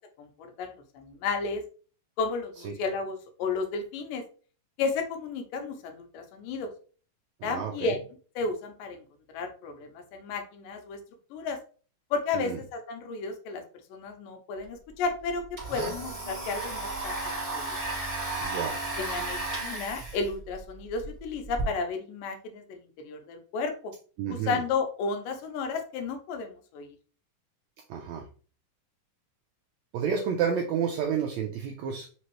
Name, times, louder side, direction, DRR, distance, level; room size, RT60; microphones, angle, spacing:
voice 1, 0.2-1.6 2.2-4.2 4.8-6.7 7.4-8.0 8.4-9.0 9.3-11.0 11.3-11.6 12.1-13.6 13.9-15.4 15.7-17.8 19.0-23.9 24.3-27.0, left 4 dB, 85° left, 6 dB, 2.4 m, -33 dB
voice 2, 7.4-7.9 12.3-12.6 18.4-18.8 24.2-24.6 27.9-28.3 29.9-32.1, right 7 dB, 90° right, 2 dB, 1.6 m, -30 dB
Domestic sounds home sounds, 14.6-14.7 15.0-21.6, right 2 dB, 15° right, 0.7 m, -34 dB
5.3 x 2.9 x 3.0 m, 0.39 s
omnidirectional pair, 3.8 m